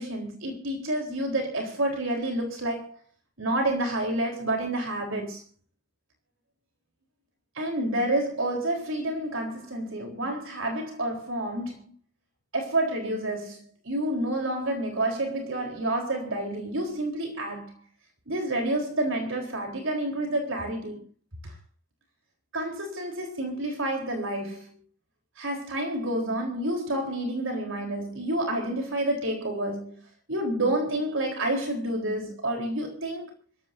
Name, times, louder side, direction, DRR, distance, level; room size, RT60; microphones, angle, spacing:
voice 1, 0.0-3.0 3.4-5.4 7.5-11.9 12.5-17.8 18.3-21.0 21.4-21.5 22.5-24.7 25.4-30.0 30.3-33.3, right 1 dB, 70° right, 4.0 m, -29 dB
26.0 x 15.5 x 2.7 m
head